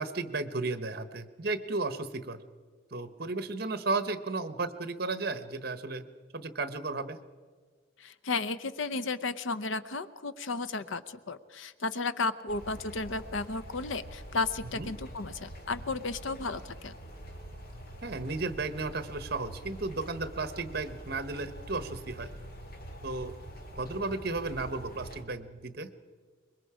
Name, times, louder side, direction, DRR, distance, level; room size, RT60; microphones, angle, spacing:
voice 1, 0.0-2.4 2.9-6.1 6.3-7.2 14.7-14.9 18.0-22.3 23.0-23.3 23.8-25.9, right 3 dB, 55° right, 11 dB, 1.1 m, -34 dB
voice 2, 8.0-16.9, left 3 dB, 85° left, 13 dB, 0.8 m, -34 dB
sound 1, 12.5-25.2, equal, 50° left, 2.6 m, -45 dB
24.5 x 22.0 x 5.0 m, 1.5 s
head